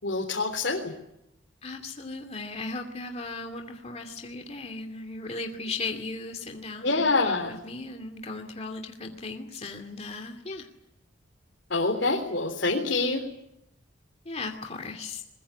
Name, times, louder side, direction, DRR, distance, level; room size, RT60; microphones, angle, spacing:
voice 1, 0.0-0.9 6.8-7.6 11.7-13.2, left 3 dB, 70° left, 1 dB, 3.7 m, -26 dB
voice 2, 1.6-10.7 14.2-15.2, left 3 dB, 35° left, 4 dB, 2.5 m, -37 dB
23.5 x 22.0 x 9.9 m, 0.83 s
head